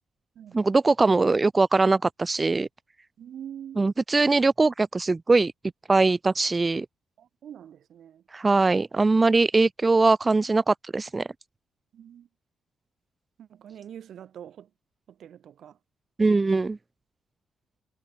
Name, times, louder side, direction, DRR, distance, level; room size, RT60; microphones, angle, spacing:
voice 1, 0.5-2.7 3.8-5.5 5.9-6.9 8.3-11.3 16.2-16.8, right 3 dB, 25° right, 0.8 m, -21 dB
voice 2, 3.2-3.8 7.2-8.2 11.9-12.3 13.4-14.7 15.1-15.8, right 9 dB, 65° right, 5.6 m, -44 dB
cardioid pair, 90°, 0 cm